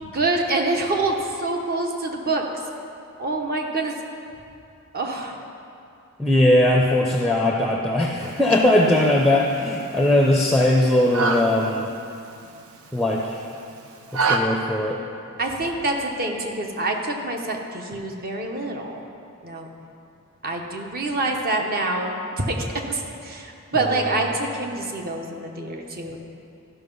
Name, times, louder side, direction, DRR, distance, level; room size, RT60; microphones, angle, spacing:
voice 1, 0.0-2.4 3.2-3.9 4.9-5.4 15.4-19.0 19.4-19.7 20.4-22.6 22.9-26.2, right 2 dB, 45° right, 2 dB, 1.0 m, -26 dB
voice 2, 6.2-11.8 12.9-13.4 14.1-15.0 23.8-23.9, left 1 dB, ahead, -1 dB, 0.6 m, -19 dB
sound 1, 8.2-14.4, right 4 dB, 80° right, 0.8 m, -30 dB
13.0 x 5.9 x 5.4 m, 2.6 s
head